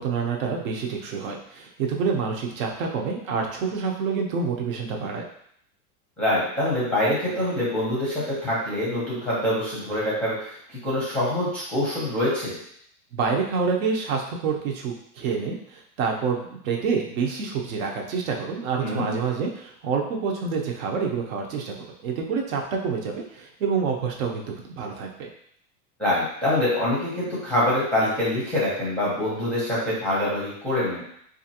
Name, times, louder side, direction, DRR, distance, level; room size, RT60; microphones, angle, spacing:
voice 1, 0.0-5.2 13.1-21.7 22.0-25.3, right 5 dB, 60° right, 1 dB, 0.8 m, -27 dB
voice 2, 6.2-12.5 18.8-19.1 26.0-31.0, left 1 dB, ahead, -8 dB, 0.6 m, -25 dB
4.2 x 2.5 x 2.8 m, 0.67 s
supercardioid pair, 170°, 45 cm